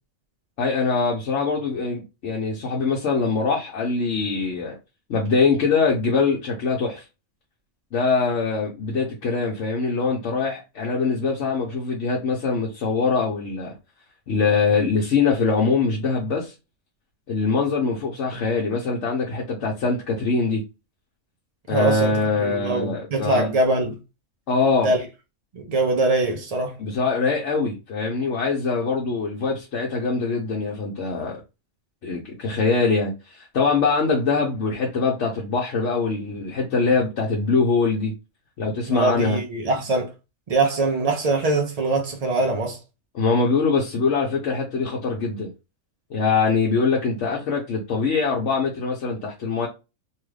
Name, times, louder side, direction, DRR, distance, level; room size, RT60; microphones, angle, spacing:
voice 1, 0.6-4.8 5.1-7.0 7.9-13.7 14.3-16.5 17.3-20.6 21.7-23.5 24.5-24.9 26.8-31.4 32.0-38.1 38.6-39.4 43.1-45.5 46.1-49.7, left 4 dB, 60° left, 1.0 m, -23 dB
voice 2, 21.7-24.0 24.8-25.0 25.5-26.7 38.9-40.1 40.5-42.8, right 2 dB, 60° right, 0.4 m, -23 dB
3.0 x 2.4 x 3.2 m
omnidirectional pair, 1.4 m